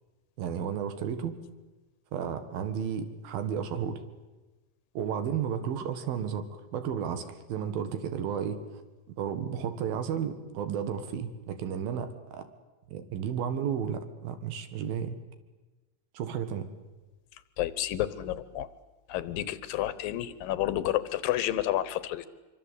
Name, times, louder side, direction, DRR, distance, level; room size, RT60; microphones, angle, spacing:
voice 1, 0.4-1.4 2.1-4.0 5.0-8.6 9.2-12.5 12.9-15.2 16.2-16.7, right 8 dB, 80° right, 9 dB, 3.5 m, -33 dB
voice 2, 17.6-18.7 19.1-22.3, left 13 dB, 75° left, 15 dB, 2.6 m, -30 dB
25.5 x 24.0 x 8.3 m, 1.2 s
omnidirectional pair, 4.2 m